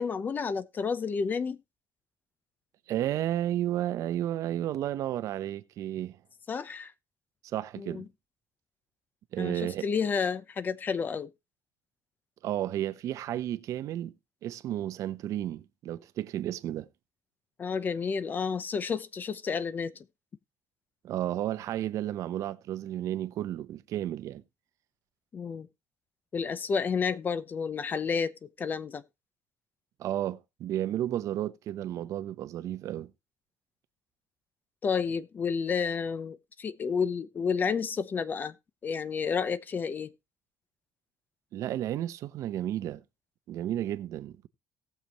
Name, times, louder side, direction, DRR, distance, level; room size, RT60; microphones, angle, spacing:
voice 1, 0.0-1.6 6.5-6.9 7.8-8.0 9.4-11.3 17.6-19.9 25.3-25.7 26.3-29.0 34.8-38.5 38.8-40.1, left 6 dB, 30° left, 0.7 m, -30 dB
voice 2, 2.9-6.2 7.4-8.1 9.3-9.9 12.4-14.1 14.4-16.9 21.0-24.4 30.0-33.1 41.5-43.0 43.5-44.5, right 12 dB, 60° right, 0.8 m, -32 dB
18.0 x 6.9 x 3.0 m
cardioid pair, 135°, 6 cm